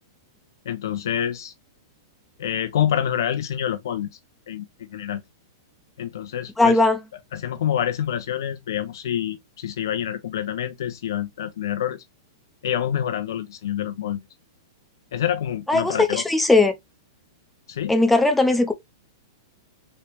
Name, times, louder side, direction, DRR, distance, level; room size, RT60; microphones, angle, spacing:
voice 1, 0.7-1.5 2.4-4.1 4.5-5.2 6.0-6.8 7.3-12.0 12.6-14.2 15.1-16.2 17.7-17.9, left 10 dB, 75° left, 0.5 m, -27 dB
voice 2, 6.6-7.0 15.7-16.7 17.9-18.7, left 2 dB, 5° left, 0.6 m, -18 dB
3.2 x 2.9 x 3.0 m
hypercardioid pair, 140°, 2 cm